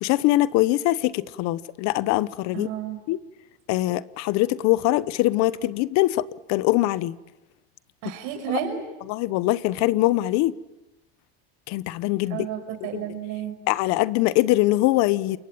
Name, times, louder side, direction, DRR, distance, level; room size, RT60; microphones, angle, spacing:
voice 1, 0.0-2.7 3.1-3.2 3.7-6.2 6.5-7.2 9.1-10.5 11.7-12.5 13.7-15.4, left 17 dB, 60° left, 1.1 m, -22 dB
voice 2, 2.5-3.0 8.0-8.8 12.3-13.5, right 10 dB, 70° right, 6.3 m, -31 dB
28.5 x 23.5 x 8.8 m
supercardioid pair, 125°, 30 cm